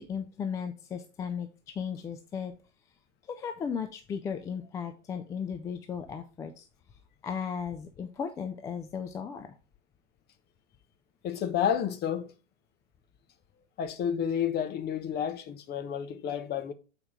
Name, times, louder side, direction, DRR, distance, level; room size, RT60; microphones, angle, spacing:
voice 1, 0.0-2.5 3.2-9.6, left 7 dB, 10° left, 0.3 m, -36 dB
voice 2, 11.2-12.3 13.8-16.7, left 8 dB, 25° left, 1.1 m, -30 dB
8.6 x 4.8 x 3.7 m
figure-of-eight pair, 100°, 36 cm